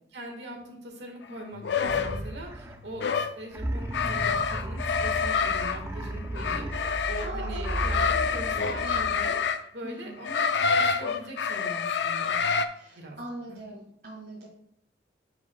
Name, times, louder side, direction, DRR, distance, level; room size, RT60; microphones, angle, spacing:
voice 1, 0.1-6.7 7.1-9.4 9.7-12.4 13.0-13.2 13.5-13.6, right 1 dB, 80° right, 2 dB, 1.6 m, -41 dB
sound 1, 1.6-2.2 3.0-3.3 3.9-5.8 6.3-7.3 7.6-9.6 10.2-12.7, left 6 dB, 75° left, 0.5 m, -27 dB
sound 2, 1.9-3.0 3.5-9.5, right 1 dB, 15° right, 0.3 m, -35 dB
voice 2, 7.2-7.8 8.1-8.2 8.5-9.0 9.8-10.2 12.7-14.5, right 1 dB, 55° right, -6 dB, 1.6 m, -41 dB
10.5 x 4.9 x 2.3 m, 0.73 s
head